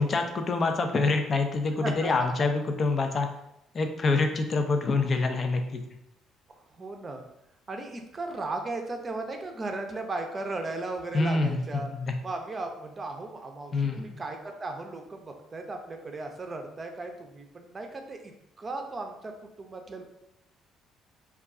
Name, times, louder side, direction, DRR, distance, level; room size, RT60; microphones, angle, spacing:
voice 1, 0.0-3.3 3.7-5.8 11.1-12.1 13.7-14.1, left 3 dB, 45° left, 5 dB, 0.4 m, -26 dB
voice 2, 1.8-2.3 6.8-7.2 7.7-11.9 12.2-18.3 18.6-19.3 19.6-20.0, right 2 dB, 35° right, 4 dB, 0.5 m, -36 dB
2.3 x 2.2 x 3.6 m, 0.82 s
hypercardioid pair, 60°, 0 cm